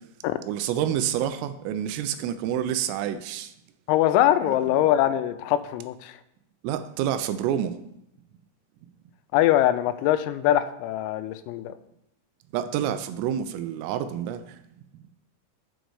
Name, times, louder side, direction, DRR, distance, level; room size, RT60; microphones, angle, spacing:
voice 1, 0.5-3.5 4.4-4.6 6.6-7.7 12.5-14.6, right 10 dB, 85° right, 10 dB, 3.2 m, -28 dB
voice 2, 3.9-6.2 9.3-11.8, left 13 dB, 90° left, 11 dB, 3.3 m, -22 dB
8.0 x 6.4 x 4.7 m, 0.81 s
omnidirectional pair, 6.0 m